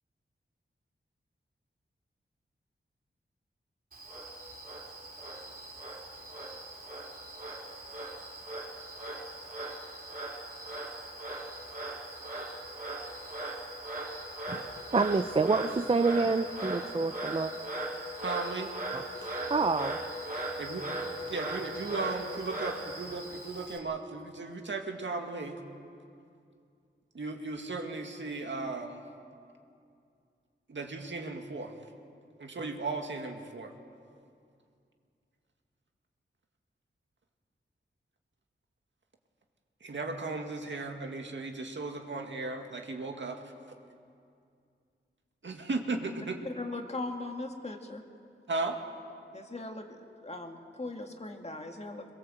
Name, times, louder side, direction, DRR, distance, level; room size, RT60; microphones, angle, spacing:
Frog, 3.9-23.8, right 1 dB, 45° right, 4.6 m, -39 dB
voice 1, 14.9-17.5 18.9-19.0 19.5-20.0, right 4 dB, 30° right, 8 dB, 0.7 m, -27 dB
voice 2, 18.2-18.7 19.2-19.3 20.6-20.8 21.3-25.6 27.1-29.0 30.7-31.7 32.4-33.7 39.8-43.4 45.4-46.4 48.5-48.8, right 3 dB, 65° right, 3 dB, 2.1 m, -36 dB
voice 3, 46.4-48.0 49.3-52.1, left 2 dB, 30° left, 3 dB, 2.0 m, -39 dB
22.5 x 21.5 x 7.9 m, 2.4 s
wide cardioid pair, 105°, 20 cm